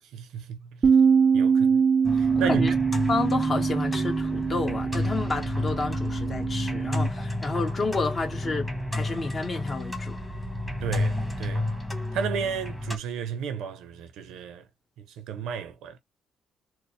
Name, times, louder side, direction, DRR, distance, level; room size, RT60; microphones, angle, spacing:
voice 1, 0.0-0.9 1.3-1.8 2.1-2.8 10.8-11.8 12.1-14.7 15.0-16.0, right 7 dB, 85° right, 0.7 m, -33 dB
Bass guitar, 0.8-7.1, right 6 dB, 40° right, 0.5 m, -24 dB
sound 1, 2.0-13.0, left 1 dB, 5° left, 1.3 m, -31 dB
voice 2, 3.1-10.2, left 3 dB, 35° left, 1.3 m, -30 dB
4.4 x 2.1 x 3.2 m
cardioid pair, 90°, 0 cm